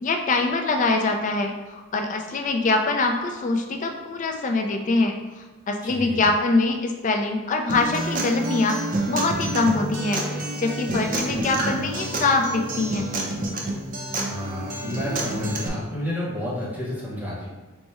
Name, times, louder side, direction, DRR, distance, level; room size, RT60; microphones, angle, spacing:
voice 1, 0.0-13.1, left 3 dB, 35° left, 4 dB, 0.3 m, -24 dB
voice 2, 5.8-6.3 14.3-17.5, left 1 dB, 5° right, -6 dB, 0.8 m, -30 dB
Acoustic guitar, 7.7-15.7, right 1 dB, 35° right, 0.5 m, -28 dB
4.2 x 2.1 x 3.4 m, 1.2 s
head